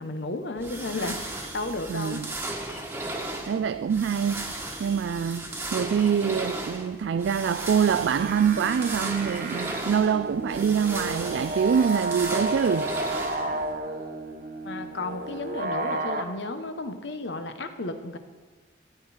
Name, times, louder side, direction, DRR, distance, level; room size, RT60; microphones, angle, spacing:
voice 1, 0.0-2.2 14.6-18.2, left 2 dB, 80° left, 1.1 m, -33 dB
sound 1, 0.6-13.7, right 2 dB, 10° right, 1.3 m, -35 dB
voice 2, 1.9-2.3 3.5-13.0, right 7 dB, 80° right, 0.3 m, -25 dB
sound 2, 8.0-16.2, right 2 dB, 50° right, 1.1 m, -32 dB
14.0 x 10.5 x 4.3 m
head